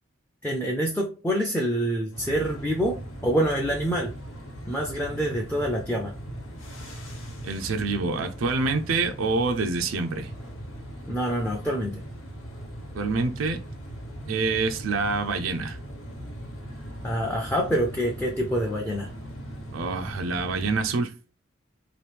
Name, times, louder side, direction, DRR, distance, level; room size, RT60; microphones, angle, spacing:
voice 1, 0.4-4.1 4.7-6.1 11.1-12.0 17.0-19.1, equal, 10° left, 0.4 m, -26 dB
sound 1, 2.1-20.9, equal, 85° left, 1.1 m, -39 dB
voice 2, 7.4-10.3 12.9-13.6 14.3-15.8 19.7-21.1, right 3 dB, 80° right, 0.5 m, -26 dB
3.0 x 2.6 x 3.3 m
head